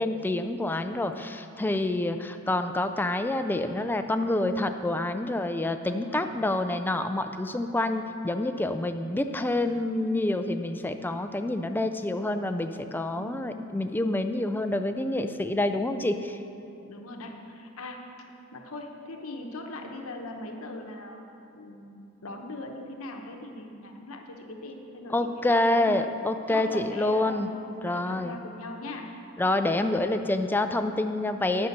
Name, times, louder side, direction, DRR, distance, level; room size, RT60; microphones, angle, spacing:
voice 1, 0.0-16.4 25.1-27.5 27.8-28.4 29.4-31.7, left 2 dB, 10° left, 8 dB, 0.3 m, -27 dB
voice 2, 5.9-6.3 13.1-13.5 16.9-18.0 18.5-21.2 21.5-25.9 26.5-27.4 27.8-29.1 30.0-30.2, left 2 dB, 65° left, 2 dB, 0.9 m, -40 dB
9.6 x 5.6 x 6.6 m, 2.7 s
head